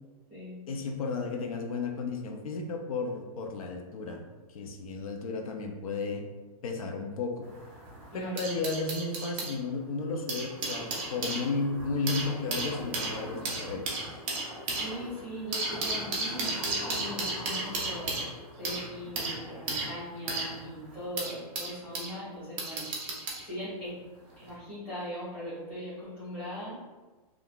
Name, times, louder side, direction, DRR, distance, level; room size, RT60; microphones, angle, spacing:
voice 1, 0.7-4.2 4.5-6.2 6.6-7.5 8.1-10.8 11.1-13.8, left 4 dB, 65° left, 3 dB, 0.6 m, -33 dB
sound 1, 7.4-9.5 10.1-22.1 22.6-23.4 24.3-24.5, right 2 dB, 20° right, 0.4 m, -34 dB
voice 2, 8.1-8.5 14.7-18.1 18.6-22.9 23.4-24.0 24.4-27.0, equal, 5° left, -15 dB, 1.1 m, -40 dB
3.5 x 2.4 x 2.3 m, 1.3 s
hypercardioid pair, 170°, 20 cm